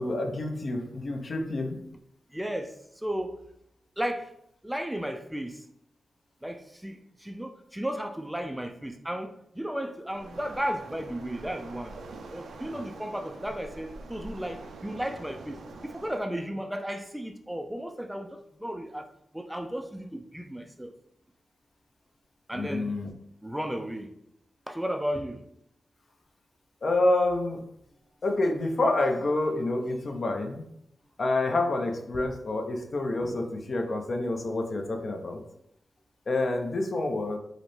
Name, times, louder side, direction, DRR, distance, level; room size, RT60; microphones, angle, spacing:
voice 1, 0.0-1.8 22.5-23.1 26.8-27.6 28.2-30.7 31.2-35.4 36.3-37.4, left 2 dB, 50° left, 4 dB, 0.6 m, -28 dB
voice 2, 2.3-3.4 4.0-4.3 4.6-5.6 6.4-11.9 12.3-20.9 22.5-22.9 23.4-24.1 24.7-25.4, equal, 5° right, 5 dB, 0.3 m, -34 dB
Waves surf, 10.1-16.2, right 3 dB, 85° right, 0.4 m, -45 dB
4.9 x 2.1 x 3.1 m, 0.75 s
cardioid pair, 80°, 0 cm